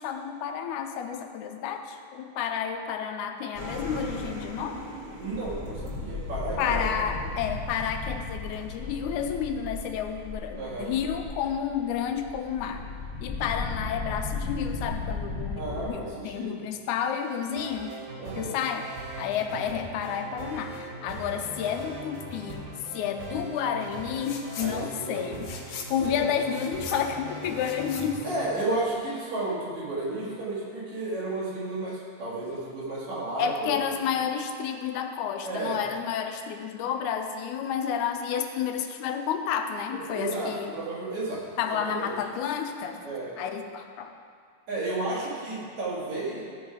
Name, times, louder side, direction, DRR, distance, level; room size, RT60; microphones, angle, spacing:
voice 1, 0.0-4.8 6.6-12.9 13.2-18.0 18.4-18.9 19.2-22.7 22.9-28.3 33.4-40.7 41.6-43.0 43.4-44.1, left 8 dB, 85° left, 5 dB, 2.0 m, -31 dB
sound 1, 3.5-15.9, left 3 dB, 45° left, 0.8 m, -36 dB
voice 2, 5.2-7.0 10.6-10.9 15.6-16.5 18.2-18.6 24.6-25.4 28.2-33.7 35.4-35.8 40.1-41.5 41.7-42.2 43.0-43.3 44.7-46.4, right 2 dB, 70° right, -7 dB, 3.4 m, -32 dB
sound 2, 17.2-28.5, right 2 dB, 90° right, 3.3 m, -40 dB
sound 3, 24.2-24.7 25.1-29.0, left 6 dB, 70° left, 1.6 m, -41 dB
14.0 x 4.7 x 4.7 m, 2.2 s
omnidirectional pair, 3.4 m